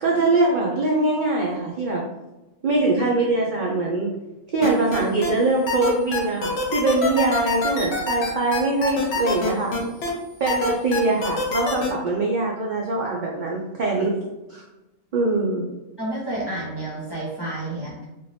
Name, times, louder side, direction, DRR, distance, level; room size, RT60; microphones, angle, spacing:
voice 1, 0.0-2.0 2.6-4.1 4.5-9.7 10.4-14.1 14.5-14.6 15.1-15.6, right 2 dB, 65° right, -3 dB, 0.4 m, -22 dB
sound 1, 4.6-5.3 5.7-10.1 10.5-11.9, left 3 dB, 60° left, 0.9 m, -25 dB
voice 2, 16.0-18.1, right 2 dB, 25° left, -6 dB, 0.7 m, -30 dB
2.6 x 2.5 x 3.2 m, 1.0 s
omnidirectional pair, 1.3 m